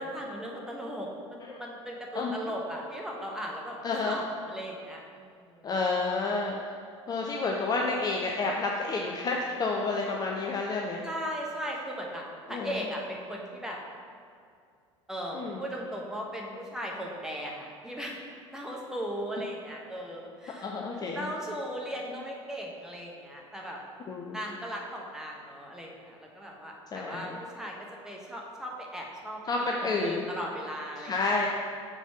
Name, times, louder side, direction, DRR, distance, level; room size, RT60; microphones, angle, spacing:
voice 1, 0.0-3.8 4.0-5.5 11.0-13.8 15.1-18.2 18.5-20.7 21.1-23.8 24.3-27.7 28.0-29.4 29.8-31.1 31.4-31.5, equal, 5° right, -2 dB, 1.1 m, -37 dB
voice 2, 3.8-4.2 5.6-6.7 7.1-11.0 12.5-12.9 15.3-15.7 20.6-21.3 24.1-24.4 26.9-27.4 29.5-30.2 31.0-31.5, left 3 dB, 25° left, -1 dB, 0.5 m, -30 dB
5.2 x 4.1 x 5.8 m, 2.3 s
figure-of-eight pair, 70°, 16 cm